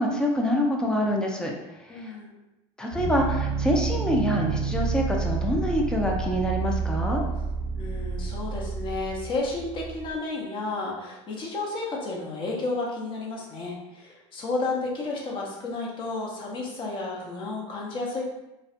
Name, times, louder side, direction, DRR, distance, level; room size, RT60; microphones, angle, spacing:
voice 1, 0.0-1.5 1.8-2.2 2.8-7.2, equal, 5° left, 0 dB, 0.4 m, -26 dB
voice 2, 1.9-2.3 7.8-18.2, left 3 dB, 35° left, -3 dB, 0.7 m, -32 dB
sound 1, 2.9-10.1, right 5 dB, 85° right, 0.5 m, -29 dB
2.5 x 2.1 x 2.5 m, 0.96 s
supercardioid pair, 120°, 14 cm